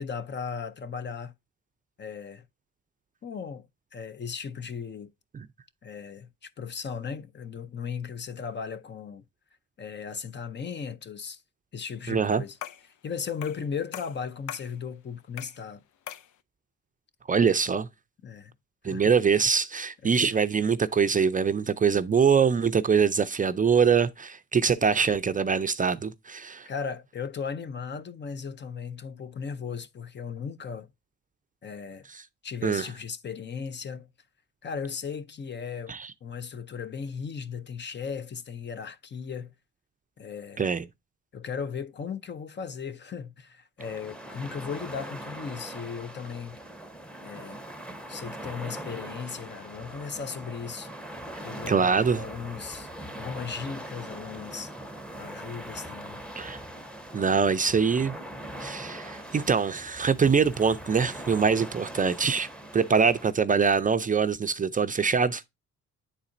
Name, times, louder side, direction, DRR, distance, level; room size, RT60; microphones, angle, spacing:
voice 1, 0.0-1.3 2.0-2.4 3.2-3.7 3.9-5.1 5.8-9.2 9.8-11.4 11.7-12.6 13.0-15.8 18.2-18.5 18.9-19.1 20.0-20.3 26.7-30.9 31.6-32.1 32.4-34.1 34.6-35.9 36.2-39.5 40.2-40.7 41.3-46.6 47.2-47.6 48.1-50.9 51.4-52.9 53.2-54.7 55.1-56.2, left 6 dB, 35° left, 0.6 m, -36 dB
voice 2, 12.1-12.4 17.3-17.9 18.8-26.7 32.1-32.2 32.6-32.9 35.9-36.1 40.6-40.8 51.7-52.2 56.4-56.6 57.1-58.1 58.6-65.4, right 6 dB, 25° right, 0.5 m, -24 dB
sound 1, 12.6-12.9 13.4-13.7 13.9-14.7 15.4-15.6 16.1-16.3, left 11 dB, 75° left, 0.6 m, -40 dB
sound 2, 43.8-63.3, right 1 dB, 5° left, 0.9 m, -41 dB
9.7 x 4.1 x 2.5 m
cardioid pair, 90°, 30 cm